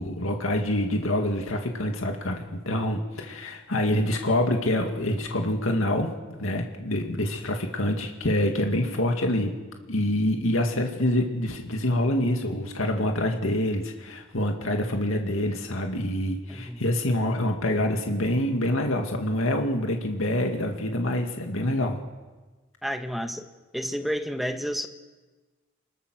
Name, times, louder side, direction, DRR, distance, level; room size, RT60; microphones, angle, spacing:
voice 1, 0.0-9.5 9.9-22.0, left 1 dB, 90° left, 3 dB, 2.3 m, -26 dB
voice 2, 22.8-23.4 23.7-24.9, equal, ahead, 6 dB, 1.4 m, -30 dB
26.0 x 22.0 x 6.5 m, 1.3 s
head